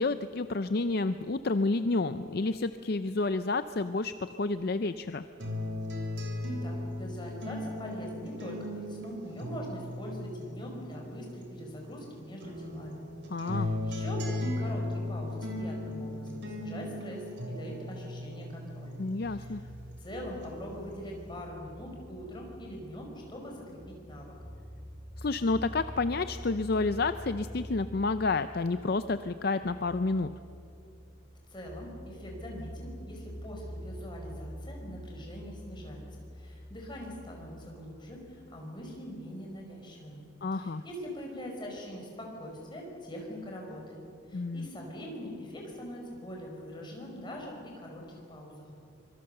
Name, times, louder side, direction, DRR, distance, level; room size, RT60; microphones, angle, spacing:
voice 1, 0.0-5.2 13.3-13.7 19.0-19.6 25.2-30.3 40.4-40.8 44.3-44.7, left 3 dB, 50° left, 11 dB, 0.5 m, -30 dB
sound 1, 5.4-12.0 12.4-20.0 20.4-21.4, left 1 dB, 60° right, 3.5 m, -37 dB
voice 2, 6.2-13.1 13.3-19.0 19.3-19.7 20.0-24.4 31.5-44.0 44.3-48.7, equal, 20° left, 0 dB, 4.9 m, -43 dB
sound 2, 19.2-37.7, equal, 5° right, 4.5 m, -46 dB
25.0 x 23.0 x 6.8 m, 2.7 s
head